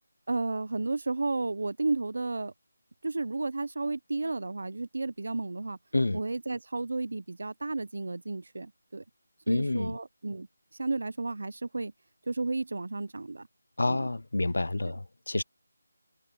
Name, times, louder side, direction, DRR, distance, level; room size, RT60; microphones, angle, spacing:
voice 1, 0.3-2.5 3.0-5.8 6.1-9.0 9.5-10.5 10.7-11.9 12.3-13.5 13.9-14.1 14.8-14.9, right 3 dB, 70° right, 0.9 m, -32 dB
voice 2, 9.5-10.0 13.8-15.4, left 2 dB, 90° left, 0.7 m, -28 dB
figure-of-eight pair, 170°, 0 cm